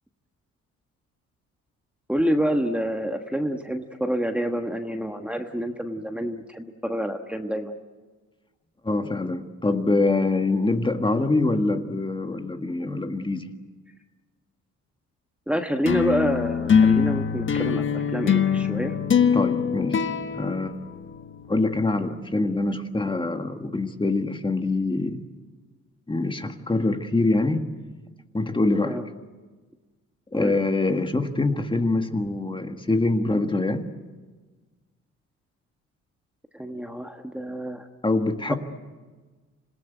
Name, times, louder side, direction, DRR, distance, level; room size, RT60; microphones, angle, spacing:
voice 1, 2.1-7.8 15.5-18.9 28.8-29.0 30.3-30.5 36.5-37.9 38.5-38.6, equal, 5° right, 4 dB, 1.4 m, -27 dB
voice 2, 8.8-13.5 19.3-20.8 21.5-25.2 26.1-27.7 28.3-29.0 30.3-33.9 38.0-38.5, left 2 dB, 15° left, 6 dB, 1.7 m, -24 dB
sound 1, 15.9-21.5, left 7 dB, 40° left, 1.3 m, -23 dB
27.0 x 17.0 x 9.3 m, 1.3 s
cardioid pair, 90°, 30 cm